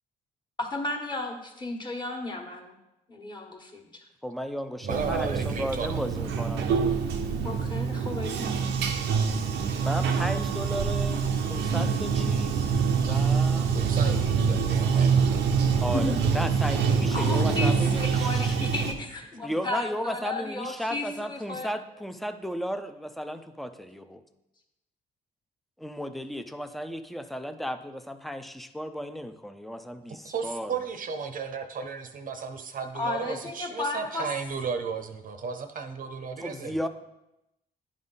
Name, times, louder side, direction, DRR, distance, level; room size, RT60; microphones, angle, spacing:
voice 1, 0.6-2.7 3.1-4.1 7.4-8.5 15.9-16.2 17.1-21.7 32.9-34.3, left 2 dB, 25° left, 3 dB, 1.3 m, -33 dB
voice 2, 4.2-6.9 9.8-12.7 13.0-13.7 15.8-18.6 19.4-24.2 25.8-30.7 36.4-36.9, equal, ahead, 10 dB, 0.5 m, -34 dB
voice 3, 4.8-6.0 13.7-15.5 30.2-36.8, right 5 dB, 50° right, 7 dB, 0.7 m, -34 dB
Bathtub (filling or washing), 4.9-18.9, right 6 dB, 90° right, 0.7 m, -25 dB
10.5 x 3.7 x 4.0 m, 0.91 s
cardioid pair, 80°, 18 cm